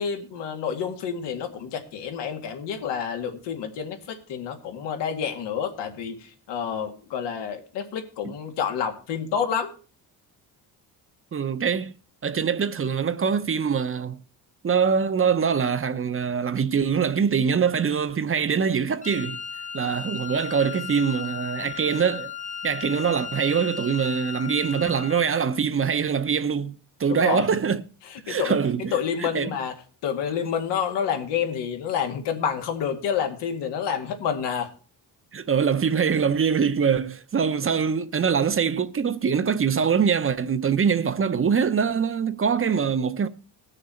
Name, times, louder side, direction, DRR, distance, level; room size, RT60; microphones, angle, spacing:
voice 1, 0.0-9.7 27.1-27.5 28.3-28.6 28.9-29.7 30.0-34.7, left 7 dB, 90° left, 2.1 m, -28 dB
voice 2, 11.3-11.9 12.2-14.2 14.6-19.4 19.7-22.3 22.6-26.7 27.0-27.8 28.3-29.5 35.3-43.3, right 6 dB, 30° right, 0.8 m, -23 dB
Wind instrument woodwind instrument, 19.0-25.4, left 7 dB, 20° left, 0.9 m, -36 dB
18.5 x 6.6 x 4.4 m
cardioid pair, 90°, 40 cm